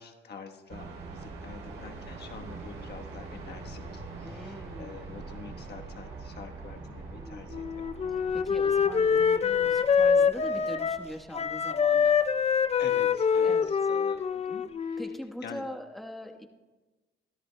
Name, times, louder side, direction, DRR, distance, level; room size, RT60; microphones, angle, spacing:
voice 1, 0.0-7.8 12.8-15.0 15.4-15.6, left 6 dB, 55° left, 4 dB, 1.2 m, -46 dB
sound 1, 0.7-14.6, right 3 dB, 75° right, 3.2 m, -44 dB
voice 2, 4.2-4.9 7.1-7.5 8.3-12.2 13.4-13.7 15.0-16.5, equal, ahead, 4 dB, 1.1 m, -42 dB
Wind instrument woodwind instrument, 7.5-11.1 11.3-15.2, left 6 dB, 35° left, 0.5 m, -25 dB
24.0 x 13.0 x 2.2 m, 1.2 s
cardioid pair, 90°, 20 cm